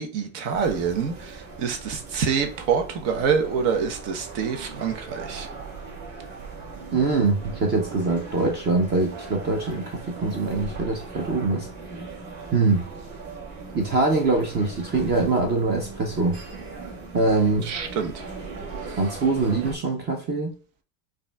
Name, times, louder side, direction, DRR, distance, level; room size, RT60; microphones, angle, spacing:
voice 1, 0.0-5.5 17.6-18.2 18.9-19.0, right 6 dB, 70° right, 1.0 m, -26 dB
sound 1, 0.5-19.7, right 4 dB, 55° right, 1.5 m, -39 dB
voice 2, 6.9-11.7 12.5-12.8 13.7-16.4 17.1-17.7 19.0-20.5, right 3 dB, 25° right, 0.4 m, -23 dB
5.0 x 2.6 x 2.2 m
cardioid pair, 150°, 46 cm